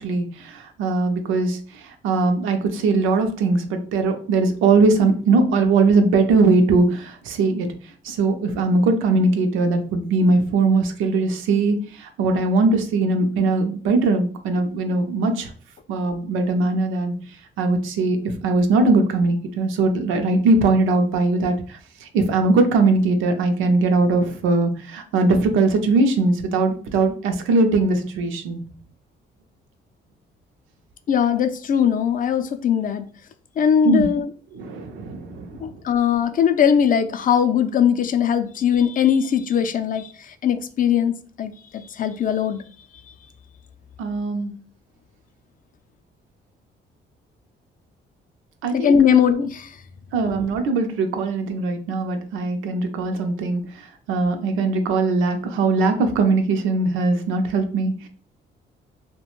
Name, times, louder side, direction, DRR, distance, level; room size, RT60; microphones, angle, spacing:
voice 1, 0.0-7.7 8.0-15.5 15.9-17.1 17.6-28.6 33.8-34.1 34.5-35.6 44.0-44.5 48.6-49.0 50.1-58.1, right 3 dB, 90° right, 6 dB, 0.5 m, -20 dB
voice 2, 31.1-33.0 33.6-34.3 35.6-42.6 48.7-49.8, left 8 dB, 45° left, 9 dB, 0.4 m, -20 dB
2.4 x 2.1 x 3.0 m, 0.42 s
cardioid pair, 90°, 20 cm